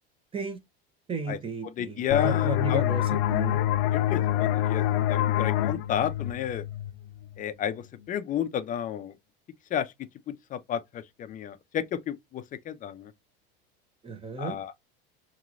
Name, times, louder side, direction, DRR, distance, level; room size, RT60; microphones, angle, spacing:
voice 1, 1.1-3.6 14.0-14.6, right 3 dB, 20° right, 0.8 m, -34 dB
voice 2, 1.6-2.8 3.9-6.6 7.4-9.1 9.7-9.9 10.3-13.1 14.4-14.7, left 9 dB, 30° left, 0.5 m, -31 dB
sound 1, 2.1-7.5, left 12 dB, 75° left, 0.5 m, -26 dB
3.0 x 3.0 x 2.5 m
supercardioid pair, 120°, 29 cm